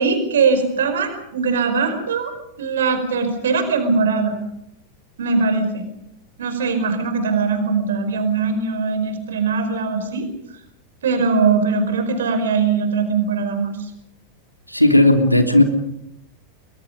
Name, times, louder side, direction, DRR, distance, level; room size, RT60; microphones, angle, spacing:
voice 1, 0.0-2.3 2.6-4.4 5.2-5.8 6.4-10.3 11.0-13.9, right 4 dB, 65° right, 8 dB, 5.0 m, -21 dB
voice 2, 14.7-15.6, left 1 dB, 90° left, 5 dB, 3.1 m, -14 dB
29.5 x 22.5 x 5.3 m, 0.79 s
figure-of-eight pair, 90°, 0 cm